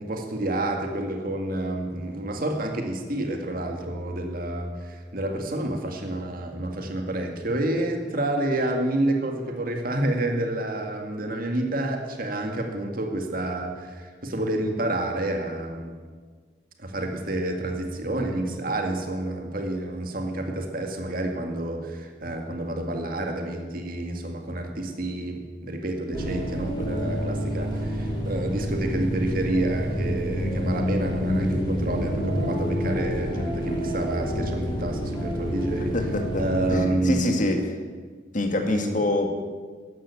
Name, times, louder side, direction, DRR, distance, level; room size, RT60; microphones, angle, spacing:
voice 1, 0.0-16.0 16.8-35.9 36.4-37.5 38.6-39.0, right 1 dB, 50° right, 3 dB, 2.1 m, -29 dB
sound 1, 26.1-36.8, equal, 25° left, 3.3 m, -28 dB
voice 2, 35.9-37.6 38.3-39.3, left 2 dB, 45° left, 5 dB, 2.0 m, -25 dB
14.0 x 11.0 x 8.6 m, 1.6 s
head